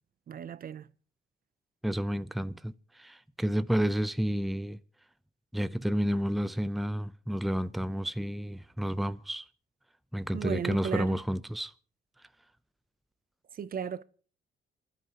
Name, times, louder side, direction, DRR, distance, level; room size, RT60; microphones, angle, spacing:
voice 1, 0.3-0.9 10.3-11.2 13.5-14.0, right 8 dB, 45° right, 0.6 m, -35 dB
voice 2, 1.8-4.8 5.5-9.5 10.1-11.7, equal, ahead, 0.6 m, -30 dB
28.0 x 11.5 x 2.9 m
cardioid pair, 90°, 20 cm